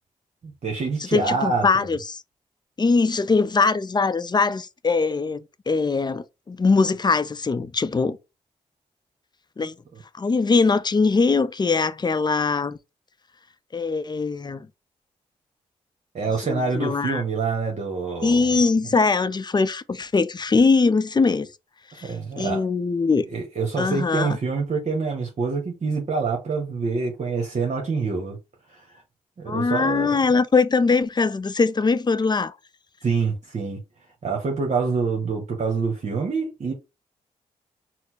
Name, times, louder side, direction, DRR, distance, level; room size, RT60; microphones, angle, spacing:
voice 1, 0.4-1.6 9.6-9.7 16.1-18.4 21.9-22.6 23.3-28.4 28.7-29.0 29.4-30.2 33.0-33.8 34.2-36.7, right 4 dB, 60° right, 1.1 m, -26 dB
voice 2, 1.0-2.2 2.8-8.2 9.6-9.7 10.1-12.8 13.7-14.7 16.4-17.2 18.2-21.5 21.9-23.3 23.8-24.4 29.5-32.6, left 4 dB, 30° left, 0.5 m, -22 dB
4.3 x 2.1 x 4.3 m
supercardioid pair, 45°, 14 cm